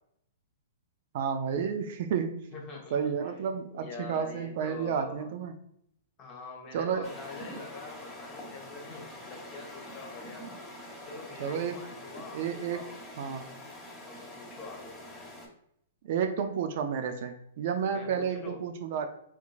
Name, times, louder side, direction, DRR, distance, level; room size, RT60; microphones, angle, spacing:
voice 1, 1.1-2.4 2.9-5.5 6.7-7.1 11.4-11.8 12.3-12.8 13.2-13.5 16.0-19.1, right 7 dB, 55° right, 7 dB, 0.4 m, -31 dB
voice 2, 2.5-3.1 3.7-5.3 6.2-10.5 11.0-12.9 14.0-14.9 17.9-18.6, left 3 dB, 30° left, -1 dB, 1.2 m, -44 dB
sound 1, 7.0-15.5, left 1 dB, 5° left, 1.3 m, -45 dB
3.6 x 2.9 x 2.4 m, 0.72 s
hypercardioid pair, 115°, 0 cm